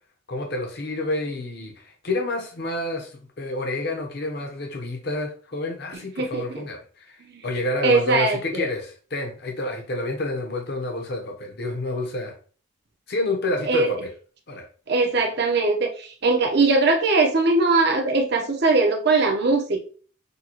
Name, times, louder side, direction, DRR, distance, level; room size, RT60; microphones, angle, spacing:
voice 1, 0.3-3.1 3.4-7.2 7.4-12.4 13.1-14.1 14.5-14.7, left 2 dB, 55° left, 2 dB, 0.9 m, -29 dB
voice 2, 7.8-8.7 13.7-13.9 14.9-19.8, right 3 dB, 60° right, 3 dB, 0.9 m, -20 dB
6.6 x 2.3 x 3.0 m, 0.40 s
head